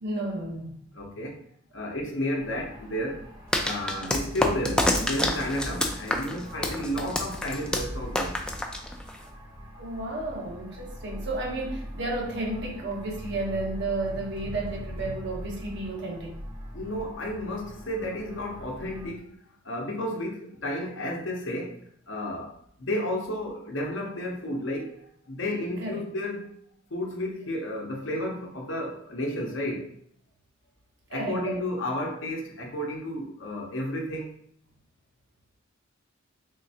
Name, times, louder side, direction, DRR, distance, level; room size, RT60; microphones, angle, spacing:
voice 1, 0.0-0.8 9.8-16.4 25.8-26.0 31.1-31.6, right 2 dB, 60° right, 0.8 m, -32 dB
voice 2, 0.9-1.4 1.7-3.3 3.6-8.4 16.7-19.3 19.6-21.8 22.1-26.5 26.9-29.9 31.1-34.3, left 1 dB, 65° left, 0.8 m, -32 dB
sound 1, 2.4-19.1, equal, 15° right, 0.8 m, -43 dB
sound 2, 3.5-9.3, left 1 dB, 5° left, 0.3 m, -28 dB
sound 3, 14.1-16.4, equal, 25° left, 1.6 m, -44 dB
3.7 x 3.1 x 2.7 m
head